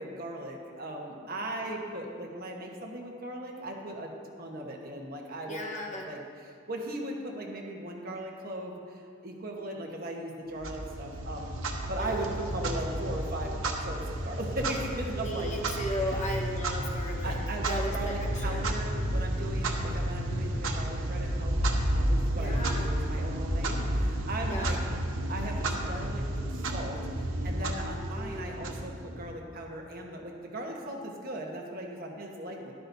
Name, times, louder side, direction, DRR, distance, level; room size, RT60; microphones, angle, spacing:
voice 1, 0.0-4.1 4.4-11.5 11.9-15.6 15.9-16.3 17.2-24.8 25.3-26.2 26.5-32.7, right 1 dB, 45° right, 0 dB, 1.2 m, -38 dB
voice 2, 5.4-6.1 12.0-12.2 15.1-17.4 17.6-18.6 22.4-22.9 24.5-24.7 28.1-28.6, equal, 35° left, 0 dB, 1.2 m, -36 dB
Clock, 10.6-29.3, right 1 dB, 85° right, 1.0 m, -31 dB
12.5 x 11.5 x 2.7 m, 2.3 s
head